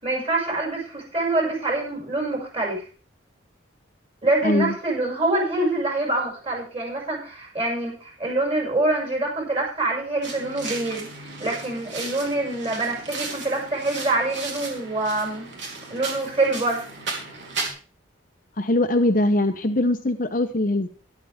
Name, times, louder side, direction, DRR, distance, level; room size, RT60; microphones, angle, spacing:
voice 1, 0.0-2.8 4.2-11.1 11.4-15.5 15.9-16.8, right 2 dB, 30° right, -2 dB, 6.0 m, -25 dB
voice 2, 4.4-4.7 18.6-20.9, left 1 dB, 45° left, 6 dB, 0.9 m, -21 dB
sound 1, 10.2-17.7, right 3 dB, 65° right, 3.4 m, -35 dB
12.5 x 12.0 x 3.6 m, 0.37 s
head